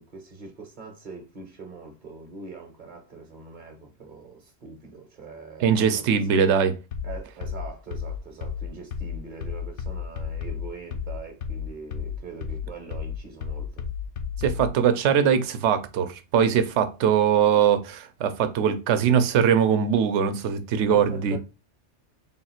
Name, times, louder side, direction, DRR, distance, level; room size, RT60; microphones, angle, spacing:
voice 1, 0.0-6.4 7.0-13.9 20.9-21.4, right 4 dB, 45° right, 0.8 m, -42 dB
voice 2, 5.6-6.8 14.4-21.4, right 7 dB, 75° right, 0.9 m, -21 dB
sound 1, 6.9-14.7, left 7 dB, 75° left, 0.9 m, -32 dB
3.6 x 2.4 x 4.2 m
omnidirectional pair, 1.2 m